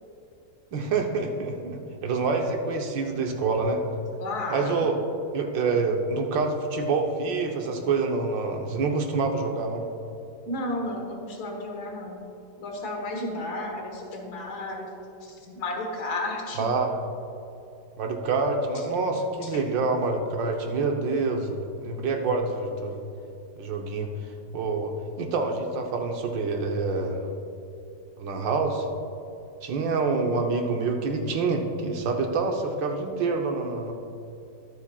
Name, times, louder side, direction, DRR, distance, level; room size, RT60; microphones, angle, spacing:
voice 1, 0.7-3.8 4.5-5.0 5.3-9.8 16.6-16.9 18.0-23.0 23.6-24.1 24.5-27.2 28.2-28.9 29.6-33.9, right 4 dB, 90° right, 3 dB, 1.7 m, -27 dB
voice 2, 4.2-4.8 10.5-12.2 12.6-14.9 15.2-16.7 19.4-19.6, left 2 dB, 60° left, 1 dB, 1.9 m, -33 dB
21.5 x 7.3 x 2.3 m, 2.6 s
omnidirectional pair, 1.9 m